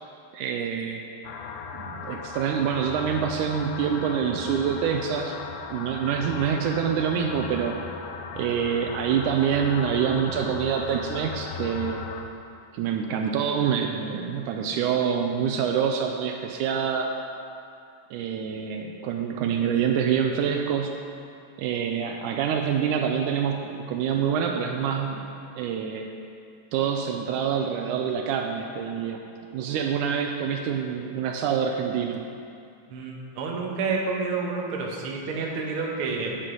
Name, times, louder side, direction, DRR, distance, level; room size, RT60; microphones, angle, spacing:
voice 1, 0.3-1.0 1.7-5.4 5.7-7.8 8.4-12.0 12.7-17.1 18.1-20.9 21.6-26.1 26.7-29.2 29.5-32.2, right 7 dB, 80° right, 3 dB, 2.0 m, -26 dB
sound 1, 1.2-12.3, left 6 dB, 85° left, 2.3 m, -37 dB
voice 2, 32.9-36.4, right 4 dB, 60° right, -1 dB, 1.5 m, -29 dB
10.5 x 9.1 x 3.8 m, 2.5 s
omnidirectional pair, 3.7 m